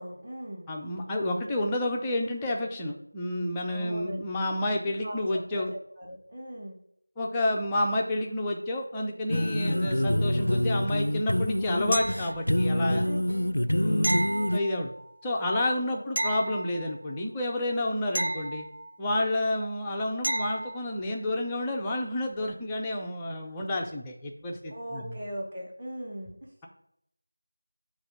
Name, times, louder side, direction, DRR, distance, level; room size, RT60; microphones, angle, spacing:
voice 1, 0.0-0.7 3.7-4.3 5.0-6.8 13.0-13.6 15.8-16.3 18.0-18.2 24.7-26.7, equal, 15° right, 0 dB, 1.0 m, -40 dB
voice 2, 0.7-5.7 7.2-13.1 13.7-14.1 14.5-14.9 15.2-18.7 19.0-25.1, left 1 dB, 5° left, -1 dB, 0.4 m, -30 dB
sound 1, 9.3-14.6, left 1 dB, 85° left, 0.4 m, -26 dB
sound 2, 11.9-12.7 14.0-15.1 16.2-17.2 18.1-19.2 20.2-20.9 23.6-23.7, right 1 dB, 55° right, 0.4 m, -32 dB
8.1 x 2.9 x 5.7 m, 0.74 s
figure-of-eight pair, 175°, 0 cm